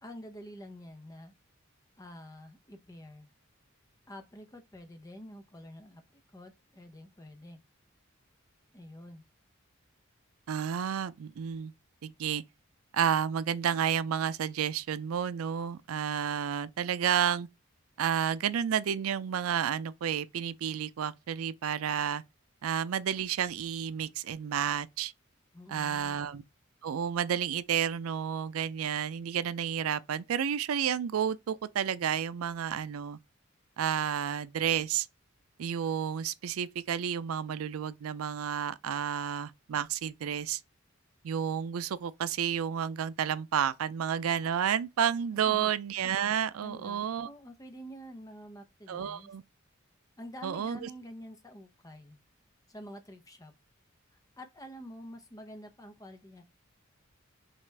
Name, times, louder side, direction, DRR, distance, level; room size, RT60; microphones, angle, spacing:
voice 1, 0.0-1.3 2.0-3.3 4.1-7.6 8.7-9.2 25.5-26.2 45.4-45.7 46.6-49.3 50.2-52.2 52.7-53.5 54.4-56.5, equal, 15° left, 0.7 m, -48 dB
voice 2, 10.5-11.7 12.0-12.4 12.9-17.5 18.0-22.2 22.6-25.1 25.7-26.4 26.8-33.2 33.8-35.1 35.6-40.6 41.2-47.3 48.9-49.4 50.4-50.9, right 8 dB, 90° right, 0.4 m, -31 dB
6.2 x 2.4 x 3.3 m
head